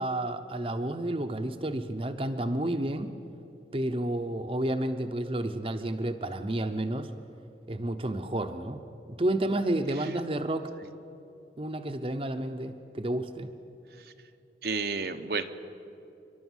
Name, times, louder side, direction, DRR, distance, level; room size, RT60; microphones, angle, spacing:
voice 1, 0.0-3.1 3.7-7.1 7.7-8.8 9.1-10.7 11.6-13.5, right 1 dB, 30° right, 7 dB, 0.8 m, -30 dB
voice 2, 14.6-15.4, right 4 dB, 60° right, 7 dB, 0.8 m, -32 dB
29.5 x 12.0 x 7.3 m, 2.7 s
head